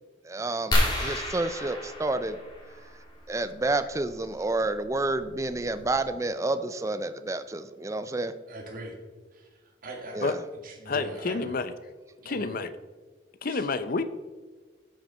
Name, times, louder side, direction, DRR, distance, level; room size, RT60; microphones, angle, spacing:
voice 1, 0.2-2.4 3.3-8.3 10.1-10.4, right 2 dB, 15° right, 11 dB, 0.4 m, -29 dB
sound 1, 0.7-3.1 4.7-4.9 5.5-5.6 5.8-6.1, left 1 dB, 20° left, 2.5 m, -29 dB
voice 2, 8.5-9.0 9.3-10.3 10.6-11.6 12.2-12.6 13.5-13.7, right 2 dB, 50° right, 1 dB, 2.0 m, -42 dB
voice 3, 10.9-11.7 12.3-12.7 13.4-14.0, left 3 dB, 50° left, 12 dB, 0.6 m, -29 dB
12.0 x 6.4 x 4.3 m, 1.4 s
head